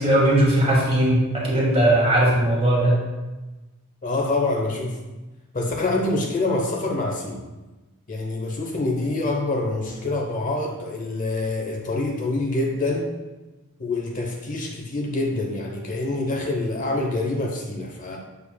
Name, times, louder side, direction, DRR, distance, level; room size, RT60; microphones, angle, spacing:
voice 1, 0.0-2.9, right 1 dB, 25° right, -3 dB, 1.7 m, -19 dB
voice 2, 4.0-5.0 5.5-7.4 8.1-13.1 13.8-18.2, left 2 dB, 35° left, 0 dB, 0.8 m, -26 dB
7.3 x 6.6 x 2.2 m, 1.1 s
head